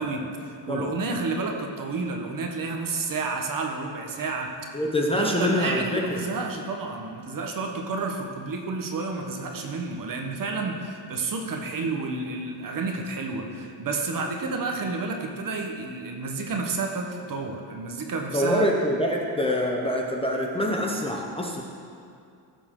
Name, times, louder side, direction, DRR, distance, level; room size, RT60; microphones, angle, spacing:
voice 1, 0.0-4.5 5.2-18.7, right 3 dB, 45° right, 2 dB, 1.1 m, -30 dB
voice 2, 0.7-1.0 4.7-6.2 18.3-21.6, equal, 10° left, -1 dB, 0.7 m, -25 dB
15.0 x 7.4 x 3.7 m, 2.4 s
cardioid pair, 155°, 46 cm